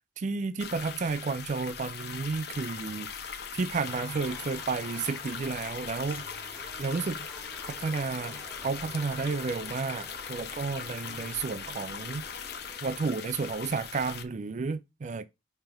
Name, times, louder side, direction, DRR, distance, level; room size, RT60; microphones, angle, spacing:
voice 1, 0.2-6.2 6.8-7.3 7.6-12.2 12.8-15.3, right 4 dB, 40° right, 0.4 m, -32 dB
sound 1, 0.6-14.2, left 7 dB, 60° left, 0.8 m, -40 dB
sound 2, 3.8-12.8, left 1 dB, 15° left, 1.8 m, -49 dB
5.6 x 3.4 x 5.7 m
head